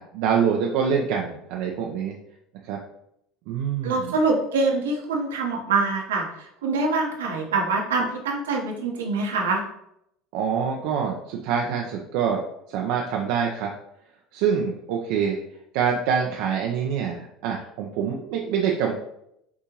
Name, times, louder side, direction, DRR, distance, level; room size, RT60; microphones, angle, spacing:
voice 1, 0.0-2.1 2.6-2.8 3.5-4.2 10.3-12.4 12.7-13.7 14.3-15.4 15.7-18.9, right 7 dB, 65° right, 0 dB, 0.5 m, -25 dB
voice 2, 3.8-6.2 6.6-9.6, right 3 dB, 80° right, 1 dB, 1.0 m, -24 dB
6.0 x 2.7 x 2.9 m, 0.77 s
hypercardioid pair, 75°, 0 cm